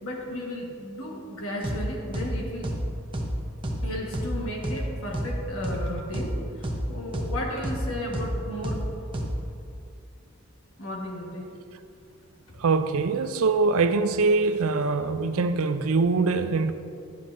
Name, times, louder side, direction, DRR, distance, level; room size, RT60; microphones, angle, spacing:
voice 1, 0.0-2.7 3.8-8.8 10.8-11.5, left 1 dB, 85° left, 0 dB, 1.4 m, -34 dB
sound 1, 1.6-1.8 2.1-2.3 2.6-2.8 3.1-3.3 3.6-3.8 4.1-4.3 4.6-4.8 5.1-5.3 5.6-5.8 6.1-6.3 6.6-6.8 7.1-7.3 7.6-7.8 8.1-8.3 8.6-8.8 9.1-9.3, right 1 dB, 25° right, 0.7 m, -30 dB
voice 2, 12.6-16.7, right 4 dB, 90° right, 10 dB, 0.4 m, -23 dB
9.5 x 9.5 x 2.6 m, 2.6 s
head